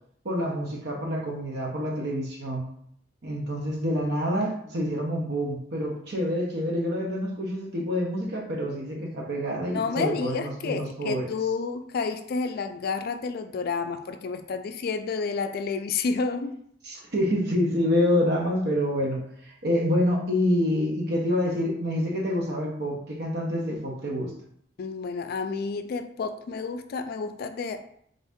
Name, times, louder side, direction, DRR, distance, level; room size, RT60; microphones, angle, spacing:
voice 1, 0.2-2.7 3.2-11.3 16.9-24.3, equal, 60° right, 0 dB, 0.8 m, -27 dB
voice 2, 9.7-16.5 24.8-27.8, left 4 dB, 55° left, 8 dB, 0.3 m, -30 dB
3.8 x 2.7 x 3.5 m, 0.68 s
head